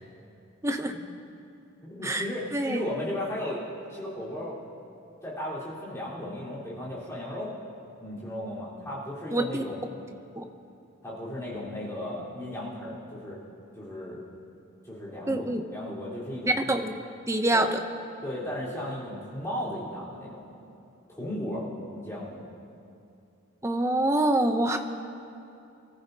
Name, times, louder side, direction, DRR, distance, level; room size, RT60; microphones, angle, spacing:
voice 1, 0.6-0.9 2.0-2.3 2.5-2.8 9.3-9.6 10.4-10.5 15.3-15.6 16.5-16.9 17.3-17.8 23.6-24.8, right 1 dB, 15° right, 6 dB, 0.6 m, -25 dB
voice 2, 1.8-3.6 3.9-4.6 5.2-7.5 8.0-9.9 11.0-13.4 13.8-14.2 14.9-16.8 17.5-17.6 18.2-20.5 21.1-22.4, left 1 dB, 15° left, -9 dB, 3.9 m, -35 dB
24.0 x 14.0 x 2.8 m, 2.6 s
head